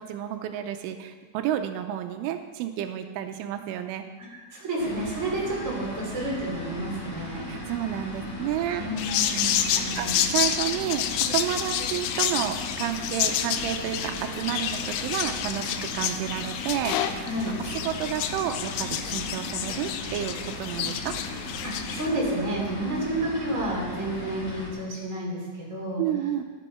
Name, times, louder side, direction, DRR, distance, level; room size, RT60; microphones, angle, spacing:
voice 1, 0.0-4.1 7.5-9.2 10.0-21.2 26.0-26.4, right 11 dB, 85° right, 7 dB, 3.2 m, -31 dB
voice 2, 4.3-7.4 8.7-10.2 17.2-17.5 21.6-26.0, right 1 dB, 20° right, -4 dB, 3.1 m, -30 dB
sound 1, 4.8-24.7, left 1 dB, 40° left, 1.1 m, -37 dB
sound 2, 9.0-22.1, left 10 dB, 85° left, 2.5 m, -29 dB
15.5 x 10.0 x 4.4 m, 1.4 s
omnidirectional pair, 5.6 m